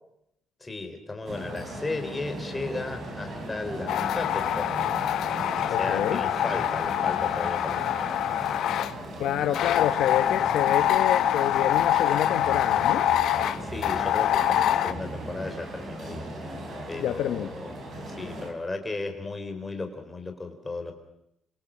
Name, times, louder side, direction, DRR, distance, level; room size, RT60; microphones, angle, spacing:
voice 1, 0.6-4.8 5.6-8.8 13.6-16.5 16.9-17.7 18.1-20.9, left 3 dB, 15° left, 5 dB, 3.7 m, -35 dB
sound 1, 1.3-18.5, right 1 dB, 40° right, 4.7 m, -38 dB
sound 2, 3.9-8.9 9.5-14.9, left 11 dB, 65° left, 1.1 m, -25 dB
voice 2, 5.7-6.2 9.2-13.0 17.0-17.5, left 11 dB, 90° left, 9 dB, 1.2 m, -27 dB
28.5 x 25.0 x 7.4 m, 0.79 s
cardioid pair, 175°, 0 cm